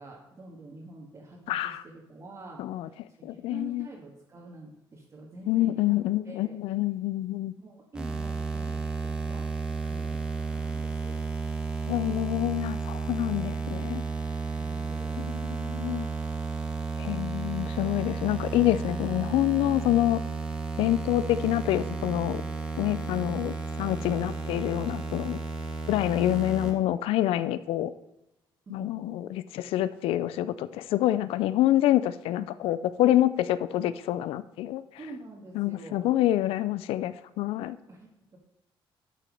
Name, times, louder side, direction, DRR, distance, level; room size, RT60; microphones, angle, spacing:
voice 1, 0.0-1.7 2.1-2.9 3.3-6.0 6.2-6.6 7.6-11.2 14.5-15.3 28.7-28.9 35.0-36.2 37.9-38.4, right 2 dB, 35° right, -3 dB, 1.8 m, -47 dB
voice 2, 1.5-1.8 2.6-2.9 3.2-3.9 5.5-7.5 11.9-14.0 15.2-16.1 17.0-20.2 20.8-22.4 22.8-23.5 23.8-25.4 25.9-27.9 28.7-34.8 35.6-37.8, left 14 dB, 85° left, 15 dB, 0.4 m, -27 dB
sound 1, 7.9-26.7, right 4 dB, 10° right, 1.6 m, -33 dB
12.0 x 4.4 x 5.3 m, 0.90 s
cardioid pair, 110°, 9 cm